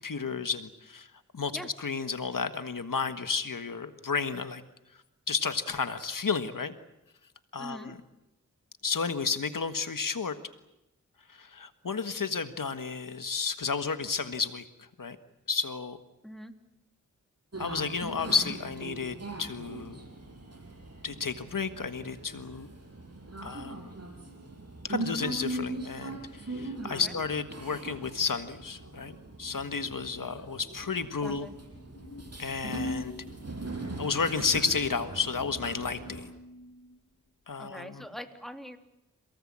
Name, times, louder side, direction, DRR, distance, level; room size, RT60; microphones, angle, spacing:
voice 1, 0.0-1.5 1.8-4.6 5.3-6.7 7.5-7.9 8.8-10.3 11.3-14.6 15.0-15.2 15.5-16.0 17.6-20.0 21.0-22.7 23.4-23.9 24.8-31.5 32.4-33.1 34.0-36.3 37.5-38.0, left 5 dB, 80° left, 10 dB, 1.6 m, -32 dB
voice 2, 7.6-7.9 16.2-16.5 27.0-27.1 31.2-31.5 37.6-38.8, equal, ahead, 6 dB, 3.1 m, -42 dB
sound 1, 17.5-36.2, right 2 dB, 50° right, 7.1 m, -41 dB
sound 2, 31.3-37.0, left 1 dB, 45° left, 1.6 m, -44 dB
29.5 x 18.5 x 8.8 m, 0.95 s
wide cardioid pair, 45°, 32 cm